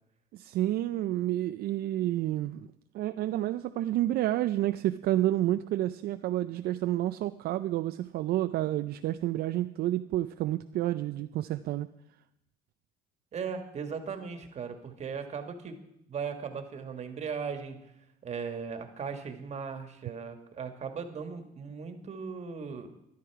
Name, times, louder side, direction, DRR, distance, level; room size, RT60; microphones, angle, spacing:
voice 1, 0.3-2.7 2.9-11.9, right 14 dB, 70° right, 10 dB, 0.4 m, -29 dB
voice 2, 13.3-15.8 16.1-17.9 18.2-22.9, right 6 dB, 40° right, 6 dB, 1.7 m, -38 dB
13.0 x 11.0 x 4.7 m, 0.85 s
cardioid pair, 110°, 17 cm